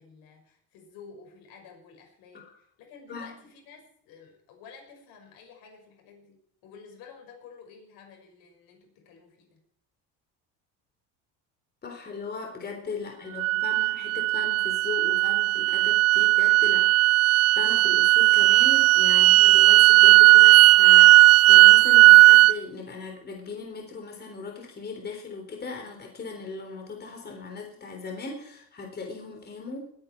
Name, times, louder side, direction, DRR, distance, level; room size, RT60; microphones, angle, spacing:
voice 1, 0.0-9.6 13.2-13.8 16.8-17.0, left 5 dB, 75° left, 3 dB, 5.9 m, -51 dB
voice 2, 11.8-16.8 17.2-30.0, left 4 dB, 25° left, 2 dB, 3.7 m, -38 dB
sound 1, 13.4-22.5, right 19 dB, 45° right, 0.4 m, -16 dB
21.0 x 9.7 x 4.6 m, 0.68 s
cardioid pair, 120°, 35 cm